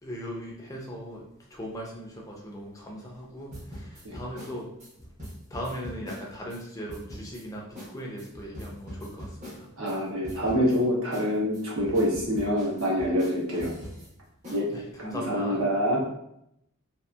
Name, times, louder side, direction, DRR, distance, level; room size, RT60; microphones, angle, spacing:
voice 1, 0.0-1.2 1.5-4.7 5.5-9.7 14.7-15.7, equal, 15° left, -2 dB, 0.5 m, -38 dB
sound 1, 3.5-6.6 6.9-7.4 7.8-7.9 8.2-10.0 10.2-10.8 11.1-14.1 14.4-14.6, equal, 35° right, 0.8 m, -41 dB
voice 2, 9.8-13.7 14.5-14.6 15.1-16.0, equal, 70° right, -4 dB, 0.9 m, -26 dB
2.7 x 2.5 x 2.3 m, 0.77 s
head